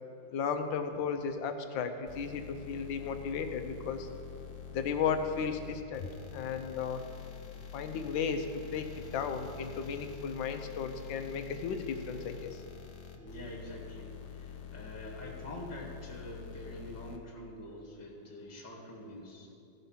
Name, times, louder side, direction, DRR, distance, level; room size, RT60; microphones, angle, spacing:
voice 1, 0.3-4.1 4.7-6.1 6.3-7.0 7.7-12.6, left 6 dB, 90° left, 7 dB, 1.5 m, -34 dB
sound 1, 2.1-17.2, left 8 dB, 65° left, 1.4 m, -47 dB
voice 2, 13.1-19.5, equal, 10° left, -3 dB, 1.5 m, -46 dB
15.0 x 5.4 x 5.7 m, 2.6 s
omnidirectional pair, 2.0 m